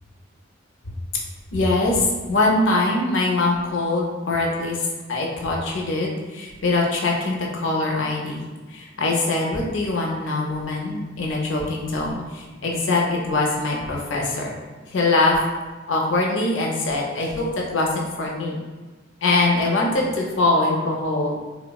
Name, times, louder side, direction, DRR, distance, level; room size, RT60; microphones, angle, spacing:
voice 1, 1.5-4.8 5.1-8.4 8.7-14.5 14.9-15.4 15.9-18.6 19.2-21.4, left 2 dB, 65° left, -1 dB, 0.5 m, -23 dB
3.1 x 2.1 x 2.3 m, 1.3 s
head